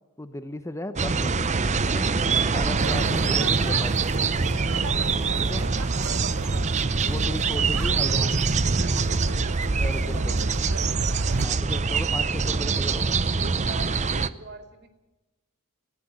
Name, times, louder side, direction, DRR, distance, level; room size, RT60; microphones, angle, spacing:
voice 1, 0.2-1.5 1.8-2.1 2.5-3.9 5.4-5.6 7.0-8.5 9.7-10.3 11.3-13.2, left 1 dB, 15° left, 10 dB, 1.0 m, -35 dB
sound 1, 1.0-14.3, right 4 dB, 30° right, 0.7 m, -24 dB
sound 2, 2.8-11.5, right 3 dB, 75° right, 0.9 m, -34 dB
voice 2, 9.8-10.3 13.0-14.9, right 2 dB, 50° right, 6 dB, 2.6 m, -44 dB
20.5 x 14.5 x 8.8 m, 1.1 s
head